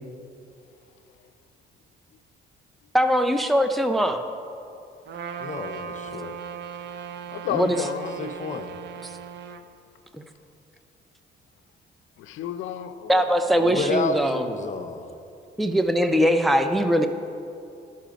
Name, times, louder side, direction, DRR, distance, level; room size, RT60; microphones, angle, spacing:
voice 1, 2.9-4.2 7.5-7.8 10.1-10.2 13.1-14.5 15.6-17.1, equal, ahead, 7 dB, 0.5 m, -21 dB
Trumpet, 5.1-9.6, right 7 dB, 65° right, 0.6 m, -37 dB
voice 2, 5.4-6.4 8.2-8.7 13.6-15.1, left 3 dB, 40° left, 7 dB, 0.7 m, -30 dB
voice 3, 7.3-8.2 12.2-13.3, left 10 dB, 80° left, 11 dB, 0.5 m, -31 dB
12.0 x 5.7 x 5.1 m, 2.6 s
cardioid pair, 90°, 20 cm